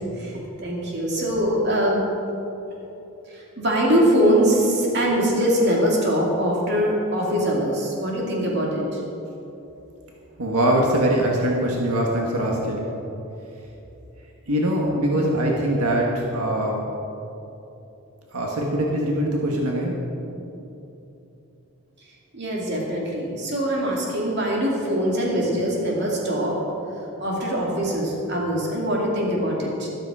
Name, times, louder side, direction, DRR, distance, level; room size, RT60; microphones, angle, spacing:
voice 1, 0.0-2.0 3.3-9.0 22.3-26.6 27.2-29.9, equal, 50° right, -3 dB, 2.6 m, -23 dB
voice 2, 10.4-12.9 14.5-16.8 18.3-19.9, right 1 dB, 85° right, -1 dB, 1.7 m, -22 dB
13.0 x 12.5 x 4.9 m, 3.0 s
head